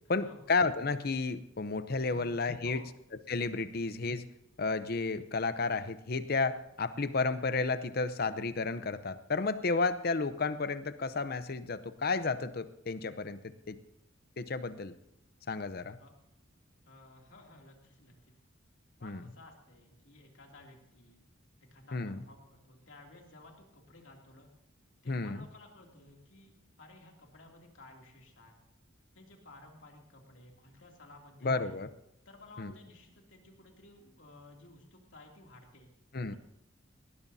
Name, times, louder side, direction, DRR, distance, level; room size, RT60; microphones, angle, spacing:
voice 1, 0.1-2.8 3.3-4.2 4.6-13.8 14.4-14.9 15.5-16.0 19.0-19.2 21.9-22.2 25.1-25.4 31.4-31.9 32.6-32.7 36.1-36.3, left 3 dB, 50° left, 12 dB, 0.7 m, -32 dB
voice 2, 2.1-2.9 3.7-3.8 16.0-16.1 16.8-18.2 19.0-21.2 21.6-24.5 25.0-26.5 26.8-28.6 29.1-31.8 32.2-35.9 36.3-36.4, left 2 dB, 70° left, 1 dB, 2.7 m, -55 dB
19.5 x 18.0 x 2.8 m, 0.80 s
head